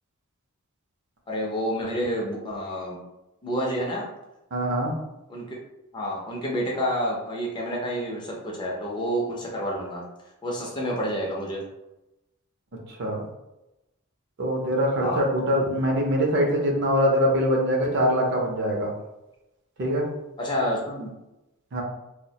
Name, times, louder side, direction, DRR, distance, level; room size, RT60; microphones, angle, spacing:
voice 1, 1.3-3.0 3.4-4.1 5.3-5.6 5.9-10.0 10.4-11.6 15.0-15.2 20.4-21.1, equal, 20° left, -2 dB, 0.4 m, -29 dB
voice 2, 4.5-5.0 13.0-13.3 14.4-18.9 19.8-20.1 21.7-21.8, equal, 50° right, 0 dB, 0.5 m, -23 dB
2.2 x 2.0 x 2.7 m, 0.95 s
head